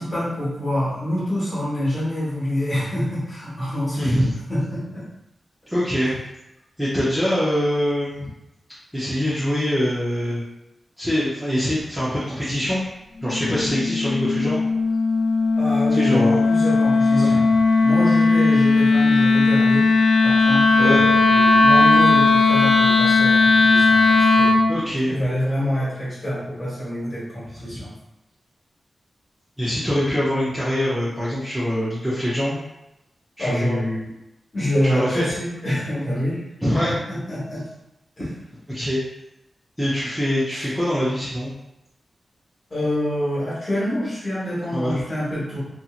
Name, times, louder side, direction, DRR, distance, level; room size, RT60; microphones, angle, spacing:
voice 1, 0.0-5.0 15.5-17.4 17.8-19.9 20.2-24.6 25.1-27.9 33.4-33.9 34.5-36.4 36.7-36.8 37.1-37.6 38.2-38.3 40.5-40.7 42.7-45.6, left 1 dB, 25° left, -9 dB, 1.4 m, -26 dB
voice 2, 3.9-4.4 5.7-6.2 6.8-8.3 8.9-10.4 11.0-12.8 13.2-14.6 15.9-16.5 17.1-17.6 20.8-21.0 24.7-25.1 27.5-27.9 29.6-32.6 33.4-34.1 34.8-35.3 36.6-37.0 38.7-39.0 39.8-41.5 44.7-44.9, equal, 5° right, -10 dB, 0.6 m, -24 dB
Wind instrument woodwind instrument, 13.2-24.7, left 3 dB, 50° left, 0.3 m, -17 dB
2.8 x 2.6 x 2.4 m, 0.88 s
wide cardioid pair, 155°, 0 cm